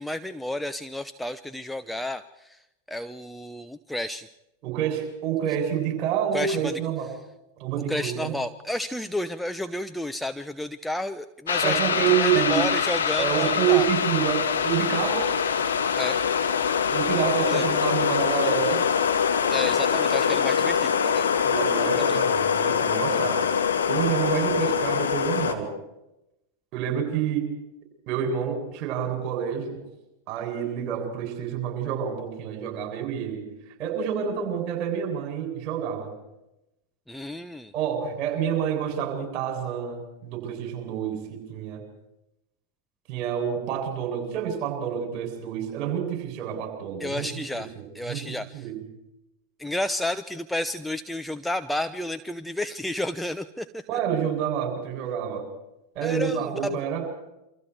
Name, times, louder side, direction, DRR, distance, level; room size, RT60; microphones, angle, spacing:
voice 1, 0.0-2.6 2.9-4.3 6.3-6.8 7.9-11.8 12.1-13.9 16.0-16.2 17.4-17.7 19.5-21.2 21.9-22.2 37.1-37.7 47.0-48.7 49.6-53.8 56.0-56.8, left 1 dB, 5° left, 9 dB, 0.9 m, -31 dB
voice 2, 4.6-7.1 7.6-8.3 11.6-12.7 13.2-15.3 16.9-18.8 21.3-23.4 23.9-25.7 26.7-27.5 28.1-29.8 30.3-33.5 33.8-36.1 37.7-41.8 43.1-47.3 47.8-48.2 48.5-48.8 53.9-55.5 55.9-57.0, right 8 dB, 40° right, 3 dB, 7.7 m, -28 dB
sound 1, 11.5-25.5, left 7 dB, 70° left, 2.5 m, -24 dB
28.5 x 26.0 x 4.8 m, 0.90 s
figure-of-eight pair, 90°, 0 cm